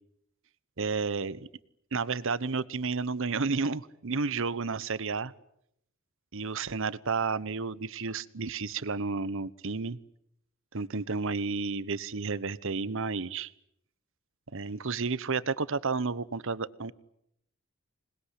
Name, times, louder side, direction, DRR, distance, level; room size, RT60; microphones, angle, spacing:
voice 1, 0.8-1.5 1.9-5.3 6.3-10.0 10.7-13.5 14.5-16.9, right 4 dB, 65° right, 18 dB, 1.0 m, -31 dB
26.5 x 20.5 x 9.9 m, 0.77 s
head